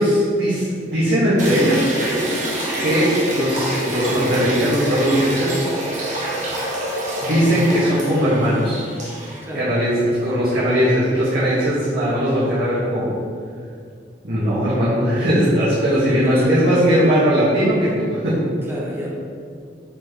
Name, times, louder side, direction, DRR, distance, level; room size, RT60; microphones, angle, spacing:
voice 1, 0.0-1.9 2.8-5.6 7.2-8.8 9.6-9.9 10.2-13.1 14.2-18.4, equal, 60° right, -10 dB, 1.7 m, -19 dB
sound 1, 1.4-9.4, right 1 dB, 45° right, 1.4 m, -26 dB
voice 2, 9.4-9.8 15.9-17.0 18.6-19.1, equal, 15° right, -5 dB, 1.2 m, -29 dB
9.0 x 4.0 x 3.8 m, 2.2 s
head